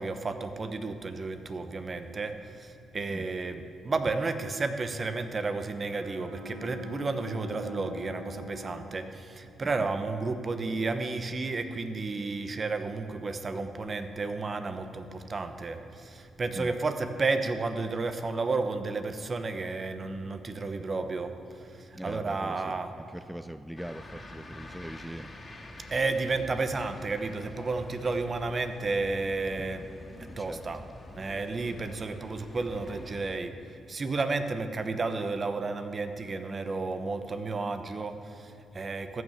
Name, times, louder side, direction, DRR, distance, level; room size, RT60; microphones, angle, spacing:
voice 1, 0.0-21.3 21.7-22.9 25.9-29.9 30.4-30.8 31.1-33.5 33.9-39.2, right 3 dB, 40° right, 9 dB, 1.0 m, -32 dB
Bowed string instrument, 5.8-10.2, left 2 dB, 90° right, 2.0 m, -46 dB
voice 2, 22.0-25.3 29.6-29.7 30.4-30.6, right 1 dB, 5° right, 12 dB, 0.4 m, -41 dB
sound 1, 23.8-33.3, left 1 dB, 30° left, 2.4 m, -46 dB
14.0 x 6.4 x 7.4 m, 2.6 s
hypercardioid pair, 45°, 0 cm